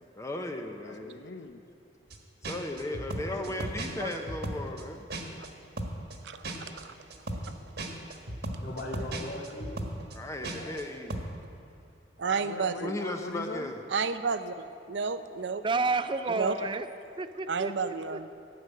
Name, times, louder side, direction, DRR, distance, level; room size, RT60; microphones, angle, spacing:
voice 1, 0.0-1.2 2.4-5.1 10.1-11.2 12.8-13.8, left 1 dB, 15° left, 4 dB, 0.8 m, -36 dB
voice 2, 0.8-1.6 6.0-6.2 6.5-6.7 7.2-8.0 12.2-13.8 16.6-16.8, left 3 dB, 75° left, 9 dB, 0.8 m, -43 dB
sound 1, 2.1-2.2 2.4-5.5 5.8-10.8 11.1-11.3, right 1 dB, 60° right, 1.5 m, -36 dB
voice 3, 4.0-4.3 15.6-16.9 17.2-18.3, right 3 dB, 25° right, 11 dB, 0.5 m, -31 dB
voice 4, 6.2-6.9 12.2-12.9 13.9-14.6 14.9-15.6 16.4-16.5 17.5-18.3, right 5 dB, 80° right, 11 dB, 0.6 m, -31 dB
voice 5, 7.6-8.2 8.6-9.9 10.5-10.8, left 1 dB, 55° left, -3 dB, 2.7 m, -40 dB
14.5 x 6.9 x 9.3 m, 2.5 s
head